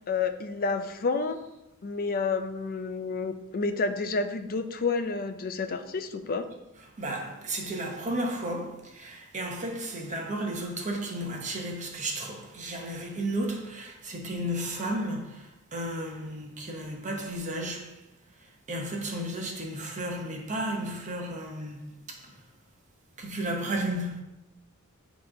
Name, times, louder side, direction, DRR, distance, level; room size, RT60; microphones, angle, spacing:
voice 1, 0.0-1.4 1.8-6.5, left 4 dB, 40° left, 0.4 m, -30 dB
voice 2, 7.0-18.0 18.3-22.4 23.2-24.2, right 1 dB, 35° right, 0.8 m, -33 dB
8.4 x 3.0 x 3.7 m
head